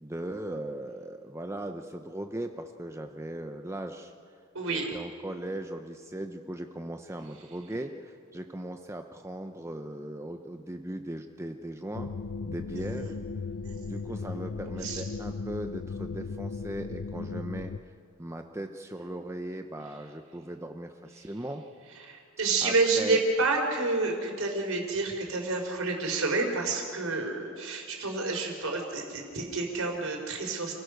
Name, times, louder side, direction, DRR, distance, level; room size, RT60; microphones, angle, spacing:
voice 1, 0.0-4.1 4.7-12.1 12.4-13.2 13.8-17.7 18.2-21.6 22.6-23.2, right 1 dB, 15° right, 5 dB, 0.7 m, -38 dB
voice 2, 4.5-4.9 12.7-13.1 13.6-14.1 14.8-15.0 22.0-30.7, right 3 dB, 75° right, 1 dB, 4.6 m, -29 dB
sound 1, 11.9-17.8, left 4 dB, 70° left, 0.6 m, -36 dB
28.5 x 16.5 x 6.5 m, 2.4 s
head